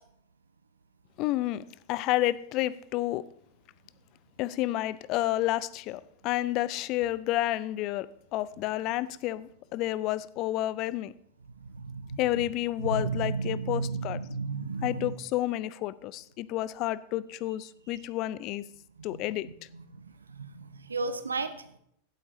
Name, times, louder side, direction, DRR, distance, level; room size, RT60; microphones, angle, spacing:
voice 1, 1.2-3.3 4.4-11.1 12.2-14.2 14.8-18.7 19.0-19.5, left 15 dB, 40° left, 0.4 m, -30 dB
voice 2, 11.6-12.2 12.8-15.1 19.1-21.8, right 3 dB, 75° right, 0.7 m, -34 dB
16.0 x 8.2 x 3.0 m
figure-of-eight pair, 90°, 0 cm